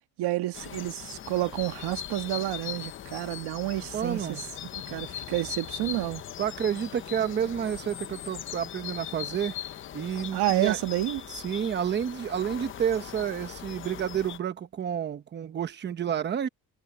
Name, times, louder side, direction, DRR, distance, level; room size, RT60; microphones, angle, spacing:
voice 1, 0.2-4.4 4.9-6.2 10.3-11.2, right 17 dB, 80° right, 1.6 m, -29 dB
sound 1, 0.5-14.4, left 11 dB, 30° left, 0.6 m, -40 dB
voice 2, 3.9-4.4 6.4-9.5 9.9-10.8 11.3-16.5, right 8 dB, 25° right, 1.0 m, -30 dB
cardioid pair, 175°, 39 cm